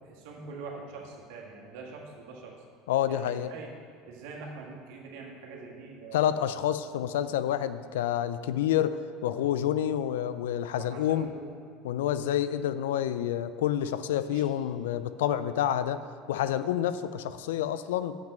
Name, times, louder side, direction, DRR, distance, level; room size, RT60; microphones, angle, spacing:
voice 1, 0.0-2.6 3.1-3.7 4.1-6.3 10.7-11.5 14.3-14.4, right 4 dB, 70° right, -1 dB, 1.7 m, -44 dB
voice 2, 2.9-3.5 6.1-11.3 11.8-16.0 16.3-18.1, left 11 dB, 80° left, 13 dB, 0.4 m, -28 dB
7.3 x 6.1 x 7.6 m, 2.2 s
hypercardioid pair, 80°, 0 cm